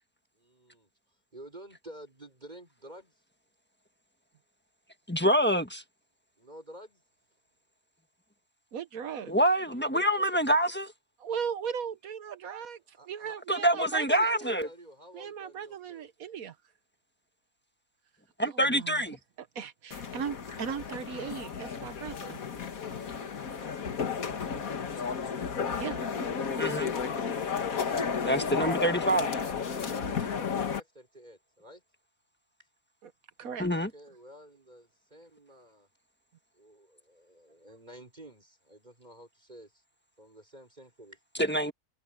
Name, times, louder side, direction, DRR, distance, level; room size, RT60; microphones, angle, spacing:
voice 1, 0.3-3.2 6.4-7.0 12.6-13.4 14.1-16.1 21.9-23.9 26.6-27.9 29.0-31.8 32.6-32.7 33.7-35.9 36.5-39.8 40.2-41.2, right 1 dB, 30° right, 5.9 m, -52 dB
voice 2, 5.1-5.8 9.3-10.9 13.5-14.7 18.4-19.2 26.6-26.9 28.3-29.3 33.6-33.9 41.5-41.7, right 1 dB, 10° left, 1.3 m, -26 dB
voice 3, 8.7-9.3 11.2-14.2 15.1-16.6 18.4-19.0 19.4-22.4 25.7-26.0 33.0-33.1 33.4-33.7, right 7 dB, 80° right, 1.5 m, -37 dB
sound 1, 19.9-30.8, left 6 dB, 75° left, 1.9 m, -33 dB
omnidirectional pair, 1.5 m